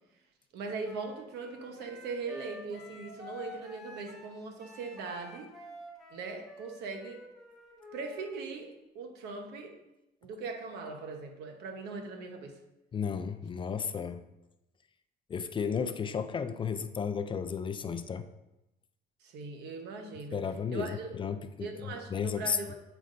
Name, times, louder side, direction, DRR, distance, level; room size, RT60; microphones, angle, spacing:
voice 1, 0.5-5.5 6.1-7.2 7.9-9.8 10.2-12.6 19.2-21.2 21.6-22.7, right 4 dB, 80° right, 4 dB, 1.0 m, -40 dB
Wind instrument woodwind instrument, 0.8-8.3, left 2 dB, ahead, 1.4 m, -49 dB
voice 2, 12.9-14.2 15.3-18.2 20.3-22.7, left 6 dB, 30° left, 10 dB, 0.4 m, -34 dB
8.0 x 5.2 x 2.6 m, 0.94 s
cardioid pair, 110°, 17 cm